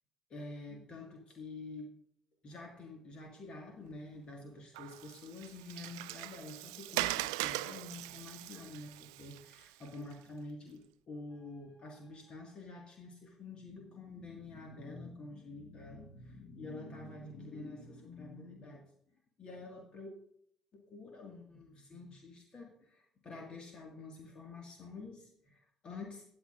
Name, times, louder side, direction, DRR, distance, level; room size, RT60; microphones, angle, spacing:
voice 1, 0.3-1.9 2.4-18.8 19.4-20.1 20.7-26.2, left 3 dB, 40° left, 2 dB, 1.9 m, -48 dB
Water, 4.7-10.1, right 19 dB, 70° right, 0.3 m, -40 dB
17.0 x 8.9 x 2.6 m, 0.68 s
figure-of-eight pair, 50°, 2 cm